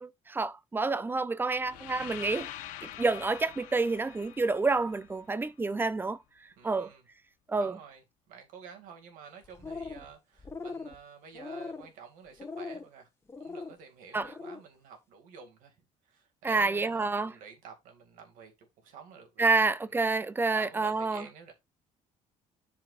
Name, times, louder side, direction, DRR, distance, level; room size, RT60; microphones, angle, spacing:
voice 1, 0.0-2.5 2.8-6.2 6.6-6.9 7.5-7.8 14.1-14.3 16.4-17.3 19.4-21.2, right 3 dB, 15° right, 0.6 m, -28 dB
sound 1, 1.6-5.6, left 12 dB, 90° left, 1.1 m, -45 dB
voice 2, 6.6-7.0 7.6-13.1 13.4-15.8 16.1-19.6 19.9-20.0 20.5-21.5, right 6 dB, 80° right, 2.3 m, -50 dB
sound 2, 9.4-10.1 10.4-10.9 11.3-11.9 12.4-12.9 13.3-13.7 14.2-14.6, left 4 dB, 20° left, 1.3 m, -40 dB
12.0 x 4.7 x 2.5 m
cardioid pair, 115°, 14 cm